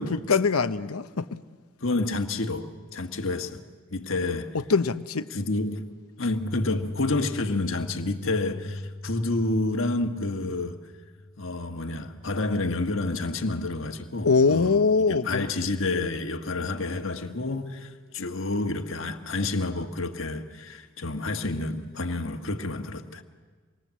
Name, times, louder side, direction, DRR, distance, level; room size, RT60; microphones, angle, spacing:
voice 1, 0.0-1.4 4.5-5.2 14.2-15.5, left 4 dB, 85° left, 11 dB, 0.8 m, -23 dB
voice 2, 1.8-3.6 3.9-4.6 5.3-5.9 6.2-10.8 11.4-14.8 15.1-23.2, left 2 dB, 65° left, 5 dB, 1.5 m, -29 dB
sound 1, 6.4-13.2, left 1 dB, 15° left, 0.6 m, -39 dB
26.5 x 22.0 x 7.6 m, 1.4 s
head